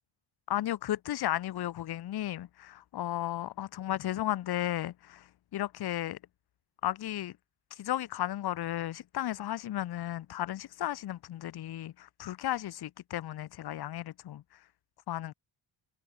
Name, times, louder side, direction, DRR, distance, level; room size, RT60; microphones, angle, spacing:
voice 1, 0.5-6.2 6.8-7.3 7.7-14.7 15.1-15.3, left 13 dB, 55° left, 0.7 m, -34 dB
cardioid pair, 130°, 48 cm